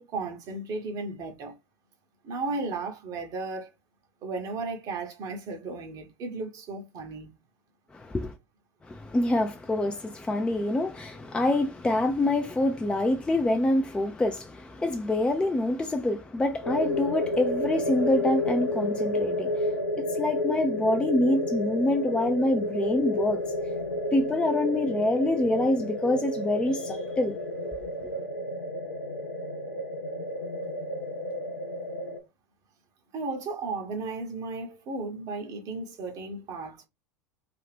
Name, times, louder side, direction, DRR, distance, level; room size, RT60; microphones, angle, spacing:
voice 1, 0.0-1.5 2.2-3.7 4.2-7.3 33.1-36.9, right 3 dB, 45° right, 0.8 m, -35 dB
voice 2, 7.9-8.3 8.8-19.7 20.0-23.4 24.1-27.4, left 1 dB, 10° left, 0.4 m, -26 dB
sound 1, 16.6-32.2, left 1 dB, 90° left, 0.5 m, -31 dB
2.5 x 2.4 x 3.3 m
figure-of-eight pair, 80°, 9 cm